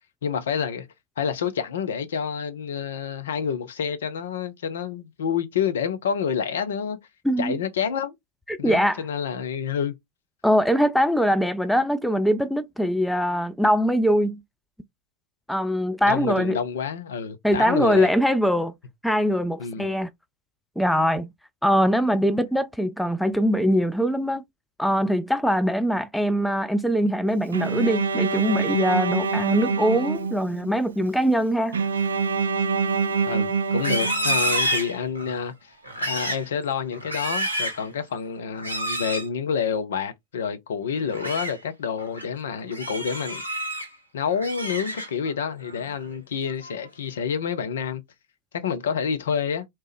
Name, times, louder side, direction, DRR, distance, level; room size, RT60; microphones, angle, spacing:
voice 1, 0.2-0.9 1.2-7.0 7.4-8.1 8.6-9.9 16.1-18.1 19.6-19.9 33.3-35.7 36.0-43.4 44.1-48.0 48.5-49.7, left 7 dB, 60° left, 0.6 m, -28 dB
voice 2, 7.2-7.6 8.5-9.0 10.4-14.4 15.5-16.6 17.4-18.7 19.0-20.1 20.8-21.3 21.6-24.4 24.8-31.8, equal, ahead, 0.3 m, -22 dB
Bowed string instrument, 27.5-30.7 31.7-34.7, right 5 dB, 70° right, 0.4 m, -25 dB
Livestock farm animals working animals, 33.7-35.4 35.8-36.5 36.9-37.8 38.6-39.3 41.0-41.5 42.0-42.2 42.7-43.9 44.3-45.3 45.7-46.0 46.4-46.9, right 1 dB, 90° left, 0.9 m, -29 dB
3.2 x 2.9 x 3.4 m
figure-of-eight pair, 90°, 0 cm